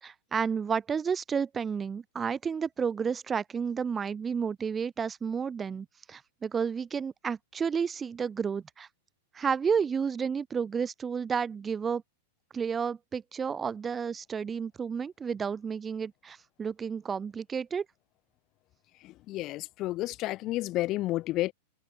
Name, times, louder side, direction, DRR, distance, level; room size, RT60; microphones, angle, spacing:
voice 1, 0.0-8.9 9.3-12.0 12.5-17.8, right 6 dB, 15° right, 1.6 m, -31 dB
voice 2, 19.0-21.5, left 17 dB, 35° left, 2.8 m, -31 dB
supercardioid pair, 150°, 0 cm